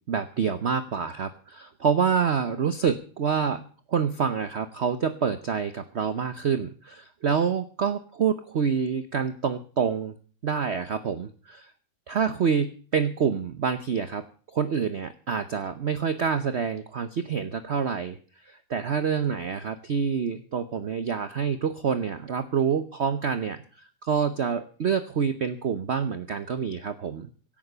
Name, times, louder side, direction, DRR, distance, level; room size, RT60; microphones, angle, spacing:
voice 1, 0.1-10.1 10.4-11.7 12.1-14.2 14.5-27.3, right 6 dB, 50° right, 11 dB, 0.9 m, -27 dB
17.0 x 9.2 x 6.7 m, 0.42 s
omnidirectional pair, 2.0 m